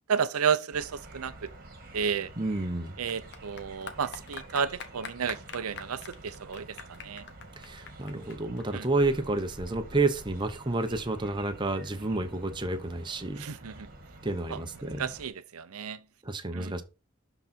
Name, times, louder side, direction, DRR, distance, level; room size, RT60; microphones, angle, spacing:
voice 1, 0.1-1.3 1.9-2.3 3.0-6.7 7.0-7.2 8.7-8.8 13.4-13.7 14.5-14.6 15.0-16.0 16.5-16.7, right 6 dB, 85° right, 0.6 m, -31 dB
sound 1, 0.7-15.3, right 2 dB, 40° right, 1.6 m, -49 dB
Clapping / Applause, 2.0-11.0, left 4 dB, 50° left, 1.1 m, -46 dB
voice 2, 2.4-2.9 7.6-13.4 14.2-15.1 16.2-16.8, right 2 dB, 20° right, 0.8 m, -30 dB
11.5 x 4.0 x 4.3 m
head